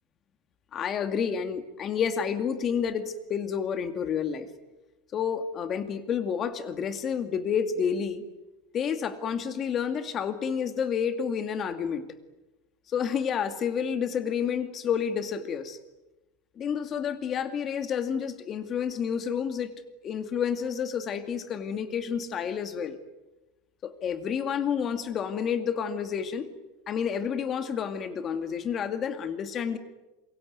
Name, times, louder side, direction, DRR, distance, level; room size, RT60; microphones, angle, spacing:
voice 1, 0.7-4.5 5.1-8.2 8.7-12.1 12.9-15.8 16.6-19.7 20.0-23.0 23.8-26.5 26.9-29.8, left 7 dB, 25° left, 9 dB, 2.3 m, -29 dB
26.5 x 23.5 x 9.5 m, 1.1 s
supercardioid pair, 160°, 0 cm